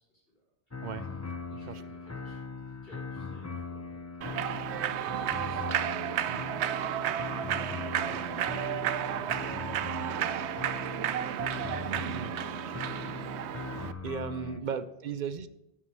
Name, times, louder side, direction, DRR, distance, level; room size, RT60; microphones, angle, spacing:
voice 1, 0.1-0.4 0.7-1.2 1.5-6.4 7.8-11.3 12.6-13.3 14.6-15.1, equal, 60° left, -5 dB, 4.8 m, -55 dB
sound 1, 0.7-14.6, left 4 dB, 20° left, 0.5 m, -40 dB
voice 2, 0.8-1.1 1.6-1.8 4.4-4.6 6.3-6.4 12.1-12.4 14.0-15.5, right 7 dB, 55° right, 14 dB, 0.6 m, -36 dB
Human voice / Clapping / Cheering, 4.2-13.9, right 10 dB, 80° right, 0.9 m, -32 dB
9.4 x 6.3 x 7.4 m, 0.88 s
omnidirectional pair, 1.1 m